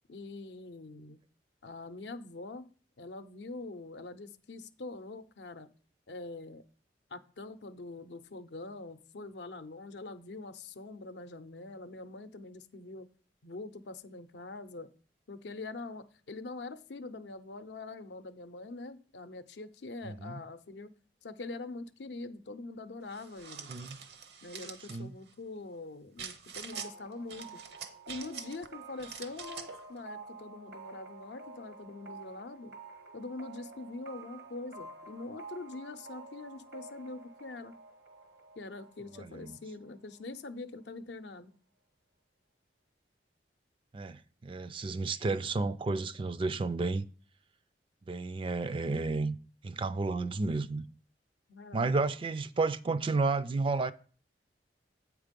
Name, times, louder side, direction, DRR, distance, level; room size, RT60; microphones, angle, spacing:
voice 1, 0.1-1.2 1.6-2.7 3.0-5.7 6.1-6.6 7.1-13.1 13.4-14.9 15.3-20.9 21.2-23.7 24.4-27.6 28.1-32.7 33.1-37.7 38.6-41.5 51.5-51.9, left 3 dB, 75° left, 0.6 m, -44 dB
voice 2, 20.0-20.4 23.7-24.0 24.9-25.1 39.1-39.6 43.9-47.1 48.1-49.4 49.6-50.8 51.7-53.9, right 3 dB, 30° right, 0.3 m, -32 dB
sound 1, 23.1-25.0 26.2-26.9 27.3-28.7 29.0-29.8, right 6 dB, 65° right, 0.8 m, -45 dB
sound 2, 26.7-40.2, right 3 dB, 85° right, 1.4 m, -50 dB
8.1 x 4.7 x 5.2 m
head